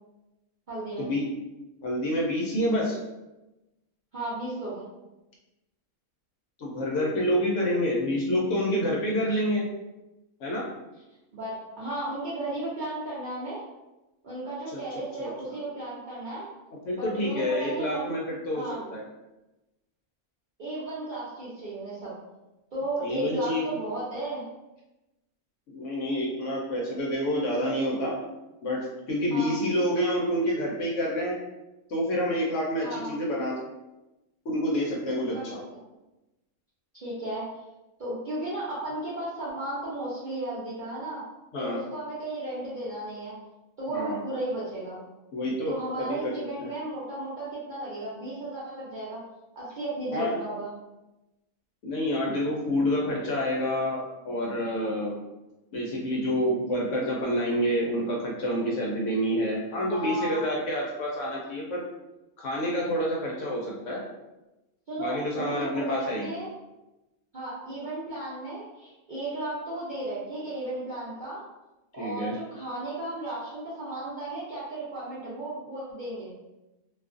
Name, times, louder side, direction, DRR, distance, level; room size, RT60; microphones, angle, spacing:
voice 1, 0.7-1.1 4.1-4.8 11.3-13.6 14.2-16.5 17.0-18.1 18.5-18.8 20.6-22.1 22.7-24.4 29.3-29.6 32.8-33.1 35.3-35.6 36.9-37.5 38.0-41.2 41.6-43.3 43.8-45.0 45.7-49.2 49.5-50.7 59.9-60.4 64.9-66.5 67.3-71.4 71.9-76.4, right 1 dB, 55° right, -9 dB, 0.5 m, -34 dB
voice 2, 1.8-3.0 6.6-9.7 10.4-10.6 14.7-14.8 15.2-15.6 16.9-18.6 18.9-19.0 23.0-23.6 25.7-28.1 28.6-28.8 29.1-31.4 31.9-33.5 34.5-35.6 41.5-41.8 43.9-44.2 45.3-46.3 50.1-50.4 51.8-55.2 55.7-61.8 62.4-64.0 65.0-66.3 72.0-72.3, equal, 70° left, -2 dB, 0.8 m, -28 dB
2.5 x 2.3 x 2.4 m, 1.0 s
omnidirectional pair, 1.5 m